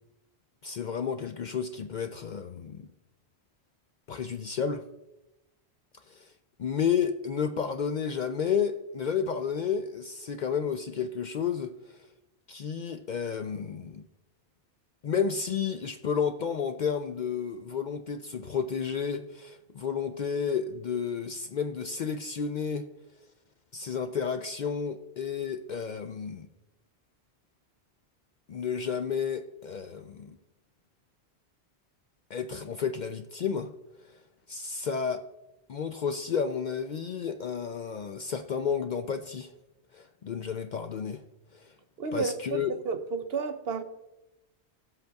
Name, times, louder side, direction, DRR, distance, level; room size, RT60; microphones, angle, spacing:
voice 1, 0.6-2.9 4.1-4.8 6.1-6.3 6.6-12.0 12.5-14.0 15.0-22.8 23.7-26.5 28.5-30.4 32.3-33.7 34.5-35.2 35.7-39.5 39.9-41.2 42.1-42.7, left 6 dB, 60° left, 0.5 m, -31 dB
voice 2, 42.0-43.8, right 4 dB, 65° right, 0.9 m, -32 dB
17.5 x 7.7 x 2.3 m
omnidirectional pair, 1.1 m